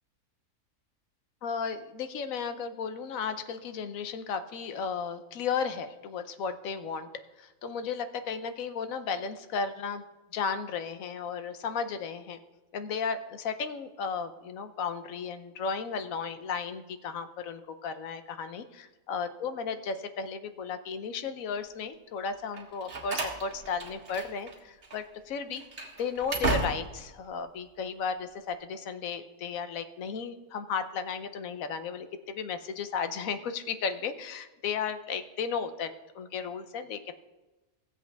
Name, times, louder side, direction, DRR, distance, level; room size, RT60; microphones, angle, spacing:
voice 1, 1.4-7.1 7.4-10.0 10.3-12.4 12.7-25.6 26.0-37.1, left 6 dB, 75° left, 10 dB, 1.1 m, -34 dB
Slam, 22.5-24.6 24.8-25.0 25.5-27.1, right 3 dB, 45° right, 1.6 m, -34 dB
16.0 x 7.7 x 3.4 m, 1.1 s
omnidirectional pair, 1.5 m